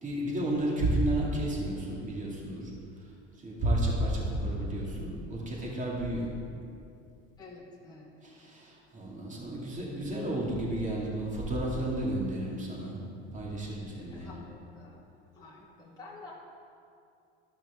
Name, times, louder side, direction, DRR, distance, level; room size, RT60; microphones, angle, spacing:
voice 1, 0.0-2.7 3.4-6.3 8.2-13.0 13.3-14.4, right 1 dB, 25° right, -4 dB, 2.3 m, -32 dB
voice 2, 7.4-8.1 14.1-15.1 15.3-16.3, left 3 dB, 10° left, -5 dB, 1.4 m, -49 dB
12.5 x 5.8 x 3.6 m, 2.5 s
supercardioid pair, 90°, 31 cm